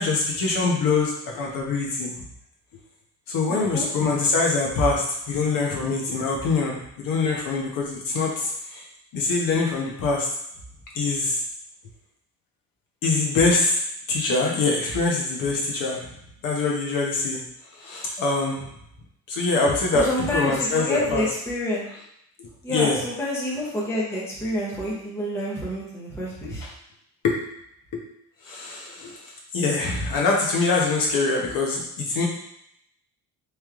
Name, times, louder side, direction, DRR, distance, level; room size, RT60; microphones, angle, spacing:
voice 1, 0.0-2.3 3.3-8.8 9.1-10.3 10.9-11.4 13.0-13.8 14.1-16.1 16.4-17.4 17.7-18.7 19.3-21.2 22.4-23.0 26.4-26.7 27.2-27.4 27.9-28.0 28.4-32.3, left 3 dB, 60° left, -2 dB, 1.0 m, -24 dB
voice 2, 3.5-3.9 19.9-21.8 22.6-26.6, left 1 dB, 5° left, -6 dB, 0.7 m, -28 dB
3.4 x 3.1 x 3.6 m, 0.73 s
cardioid pair, 180°, 38 cm